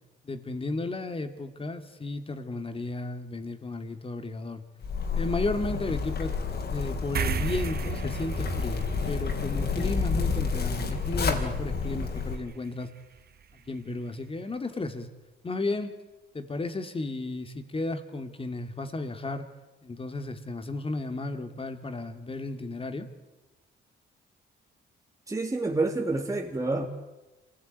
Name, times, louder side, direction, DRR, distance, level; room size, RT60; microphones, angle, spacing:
voice 1, 0.2-4.6 5.1-6.3 6.6-12.9 13.7-15.1 15.4-16.0 16.3-19.5 19.8-23.1, left 2 dB, 25° left, 8 dB, 2.7 m, -34 dB
Zipper (clothing), 4.8-12.3, left 5 dB, 55° left, 4.2 m, -30 dB
sound 1, 7.1-13.9, right 8 dB, 50° right, 1.4 m, -38 dB
voice 2, 25.3-26.9, right 2 dB, 15° right, 1 dB, 2.8 m, -28 dB
26.0 x 17.0 x 9.4 m, 1.1 s
cardioid pair, 90°, 20 cm